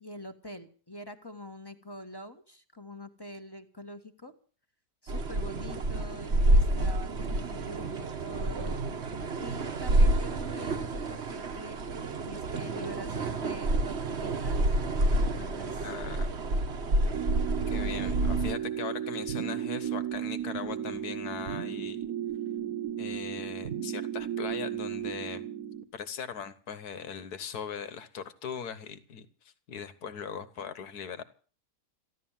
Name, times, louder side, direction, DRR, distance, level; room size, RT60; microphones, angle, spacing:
voice 1, 0.0-4.3 5.0-8.8 9.4-11.8 12.2-14.8 15.0-15.9, left 1 dB, 15° left, 7 dB, 1.3 m, -45 dB
sound 1, 5.1-18.5, right 1 dB, 45° right, 1.3 m, -28 dB
voice 2, 15.8-16.3 17.7-22.0 23.0-25.4 25.9-29.3 29.7-31.2, left 7 dB, 65° left, 13 dB, 1.8 m, -39 dB
sound 2, 17.1-25.8, right 10 dB, 60° right, 1.5 m, -34 dB
15.0 x 12.0 x 7.4 m, 0.41 s
omnidirectional pair, 1.8 m